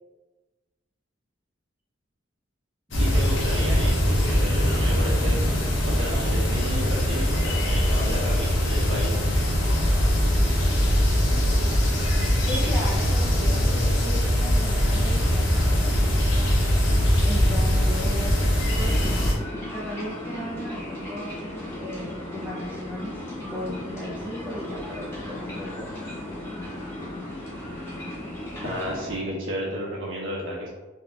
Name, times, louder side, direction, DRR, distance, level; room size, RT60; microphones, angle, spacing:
sound 1, 2.9-19.3, equal, 70° left, 0.8 m, -22 dB
voice 1, 3.0-5.4 5.8-9.2 28.6-30.7, equal, 75° right, -5 dB, 1.2 m, -32 dB
voice 2, 12.5-16.5 17.2-18.4 18.8-19.2 19.7-21.3 21.8-23.2 23.4-25.9 27.0-27.2, left 1 dB, 10° right, -5 dB, 0.5 m, -36 dB
sound 2, 18.8-29.2, left 1 dB, 15° left, 1.1 m, -36 dB
4.1 x 2.8 x 2.3 m, 1.2 s
head